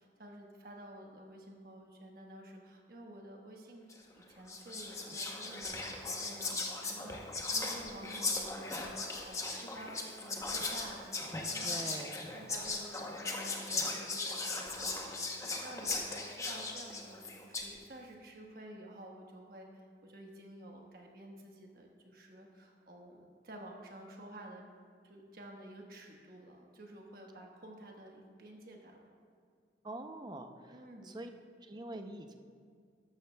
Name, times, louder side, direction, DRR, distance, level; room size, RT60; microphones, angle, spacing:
voice 1, 0.0-3.9 4.1-19.7 20.0-24.6 25.0-29.1 30.7-31.2, right 1 dB, 55° right, 1 dB, 1.3 m, -51 dB
Whispering, 3.9-4.1 4.5-17.8, left 3 dB, 15° left, 0.8 m, -38 dB
voice 2, 11.6-12.2 29.8-31.3 31.6-32.3, right 1 dB, 25° right, 6 dB, 0.5 m, -44 dB
13.5 x 12.0 x 2.3 m, 2.1 s
head